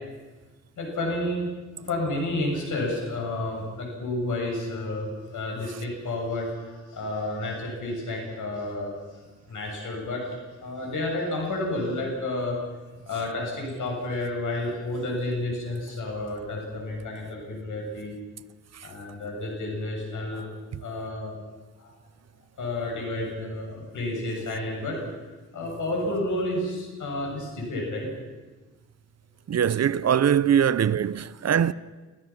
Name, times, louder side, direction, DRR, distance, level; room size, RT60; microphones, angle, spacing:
voice 1, 0.8-1.5 1.8-10.2 10.6-12.6 13.1-18.2 18.8-20.5 20.8-21.4 21.8-21.9 22.6-28.1 29.5-29.6 30.2-30.3, left 2 dB, 85° left, 7.4 m, -31 dB
voice 2, 29.5-31.7, right 8 dB, 55° right, 0.7 m, -22 dB
29.5 x 15.5 x 6.0 m
cardioid pair, 90°, 30 cm